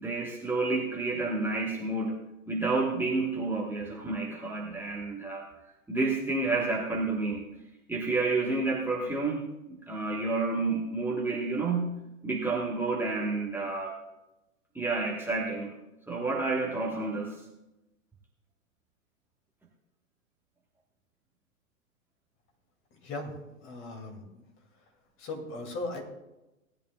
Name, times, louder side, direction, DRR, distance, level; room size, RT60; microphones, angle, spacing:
voice 1, 0.0-2.2 2.5-5.5 5.9-7.5 7.9-11.9 12.2-13.9 14.7-15.7 16.1-17.4, right 3 dB, 5° right, -4 dB, 1.4 m, -30 dB
voice 2, 23.6-24.2 25.2-26.0, left 2 dB, 30° left, 2 dB, 2.5 m, -37 dB
18.0 x 10.5 x 2.4 m, 0.96 s
figure-of-eight pair, 105°, 42 cm